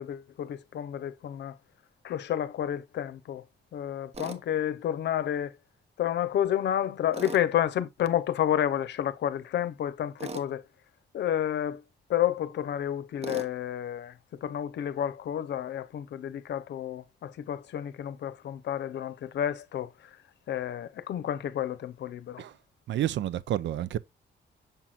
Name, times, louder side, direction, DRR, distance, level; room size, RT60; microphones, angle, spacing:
voice 1, 0.0-1.5 2.0-3.4 3.7-5.5 6.0-10.6 11.1-11.8 12.1-14.1 14.4-19.9 20.5-22.4, left 10 dB, 70° left, 0.7 m, -30 dB
Tools, 4.1-4.4 7.1-7.5 10.2-10.5 13.2-13.5, right 3 dB, 35° right, 0.9 m, -38 dB
voice 2, 22.9-24.0, right 12 dB, 75° right, 0.5 m, -29 dB
6.9 x 5.8 x 2.4 m
wide cardioid pair, 180°, 19 cm